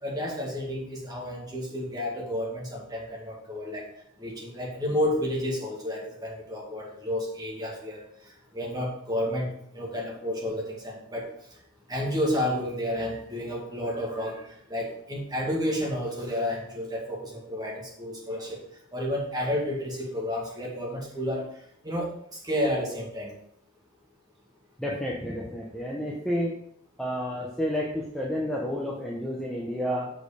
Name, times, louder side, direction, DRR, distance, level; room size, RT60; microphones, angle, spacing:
voice 1, 0.0-3.9 4.2-8.0 8.5-11.3 11.9-18.6 18.9-21.5 21.8-22.1 22.4-23.3, equal, 20° right, -3 dB, 2.0 m, -31 dB
voice 2, 24.8-26.5 27.0-30.1, equal, ahead, -4 dB, 0.9 m, -30 dB
6.2 x 5.3 x 5.0 m, 0.69 s
head